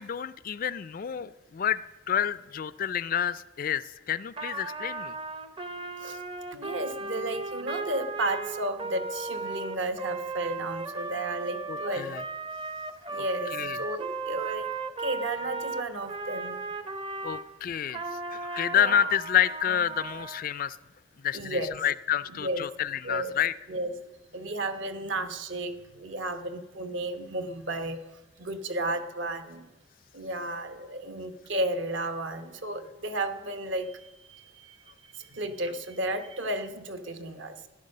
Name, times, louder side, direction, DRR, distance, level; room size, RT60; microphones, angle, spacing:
voice 1, 0.0-5.1 11.7-12.2 13.5-13.8 17.2-18.0 18.3-20.8 21.2-23.5, left 9 dB, 40° left, 17 dB, 0.3 m, -29 dB
Trumpet, 4.4-17.5 17.9-20.4, right 3 dB, 25° right, 0.6 m, -36 dB
voice 2, 6.5-12.1 13.1-14.7 15.0-16.6 18.7-19.0 21.3-21.7 22.4-22.7 23.0-23.4 23.7-23.9 24.3-28.0 28.4-29.7 30.1-34.8 35.1-37.6, right 1 dB, 60° right, 9 dB, 1.0 m, -33 dB
13.5 x 10.0 x 6.5 m, 1.1 s
head